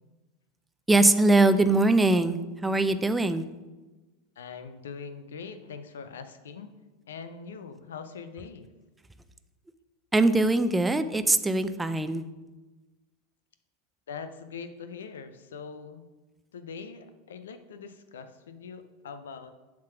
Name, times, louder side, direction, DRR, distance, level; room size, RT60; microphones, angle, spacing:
voice 1, 0.9-3.5 10.1-12.2, right 2 dB, 10° right, 10 dB, 0.5 m, -22 dB
voice 2, 4.4-6.7 7.1-8.7 14.1-16.0 16.5-19.5, left 5 dB, 75° left, 10 dB, 0.6 m, -42 dB
7.3 x 3.7 x 5.9 m, 1.2 s
hypercardioid pair, 90°, 0 cm